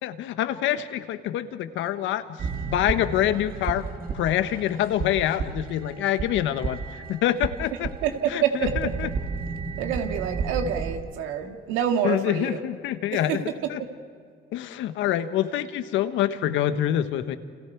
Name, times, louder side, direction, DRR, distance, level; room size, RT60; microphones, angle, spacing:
voice 1, 0.0-2.2 2.6-3.9 4.1-6.8 7.1-7.9 8.3-8.4 8.8-9.1 12.0-13.4 13.7-13.8 14.5-17.4, left 12 dB, 75° left, 10 dB, 1.4 m, -26 dB
sound 1, 2.4-11.0, right 5 dB, 45° right, 2.0 m, -33 dB
voice 2, 8.0-8.9 9.8-12.6 13.1-13.4, right 8 dB, 85° right, 5 dB, 2.1 m, -27 dB
29.5 x 27.0 x 4.7 m, 2.2 s
cardioid pair, 100°, 20 cm